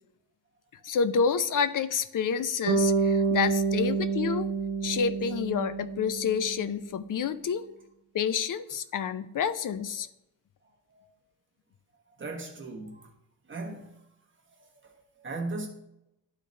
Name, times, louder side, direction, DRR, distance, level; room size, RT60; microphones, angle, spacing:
voice 1, 0.8-4.5 4.8-7.6 8.1-10.1, left 6 dB, 50° left, 0.5 m, -28 dB
Bass guitar, 2.7-6.8, right 5 dB, 60° right, 1.6 m, -28 dB
voice 2, 12.1-13.1 13.4-14.0 14.5-15.7, right 2 dB, 30° right, 1.2 m, -38 dB
12.0 x 4.1 x 3.2 m
wide cardioid pair, 160°, 41 cm